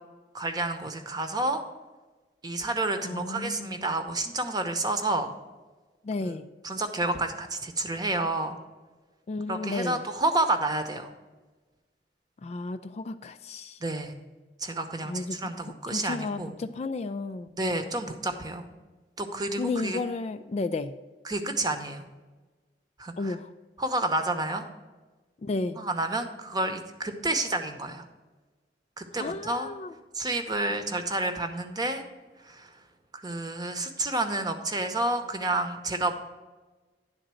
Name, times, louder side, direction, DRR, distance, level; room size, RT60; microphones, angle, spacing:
voice 1, 0.3-1.6 2.4-5.3 6.3-6.4 6.6-8.6 9.5-11.1 13.8-14.1 14.6-16.5 17.6-18.7 19.2-20.0 21.2-22.0 23.0-23.3 23.8-24.7 25.8-28.1 29.0-29.7 30.1-32.0 32.4-32.7 33.1-36.1, right 2 dB, 25° right, 7 dB, 0.8 m, -29 dB
voice 2, 3.0-3.9 6.0-6.5 9.3-10.0 12.4-13.8 15.0-17.5 19.6-20.9 23.2-23.5 25.4-25.8 29.1-29.9 30.5-30.7, left 3 dB, 40° left, 10 dB, 0.3 m, -33 dB
10.5 x 3.9 x 7.6 m, 1.3 s
head